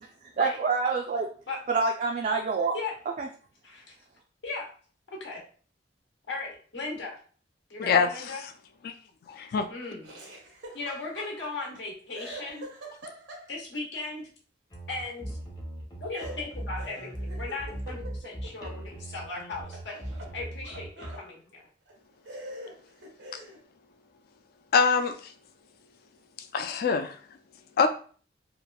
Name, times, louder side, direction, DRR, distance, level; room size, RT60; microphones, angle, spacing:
voice 1, 0.4-1.3 1.7-2.7 3.2-3.3, right 4 dB, 45° right, 1 dB, 0.3 m, -26 dB
voice 2, 6.3-7.2 7.7-8.4 9.7-10.1 10.7-12.7 13.5-14.3 14.9-15.3 16.0-19.9 20.3-21.6 23.3-23.4, left 3 dB, 85° left, -1 dB, 1.0 m, -37 dB
voice 3, 9.3-9.7 24.7-25.1 26.5-27.2 27.8-27.9, left 5 dB, 55° left, 7 dB, 0.3 m, -23 dB
Laughter, 10.0-11.8 12.1-13.8 16.1-19.3 19.6-21.3 21.9-22.0 22.3-23.6, right 1 dB, 85° right, 0.7 m, -45 dB
sound 1, 14.7-21.2, right 1 dB, 20° left, 0.7 m, -39 dB
2.9 x 2.4 x 2.2 m, 0.42 s
head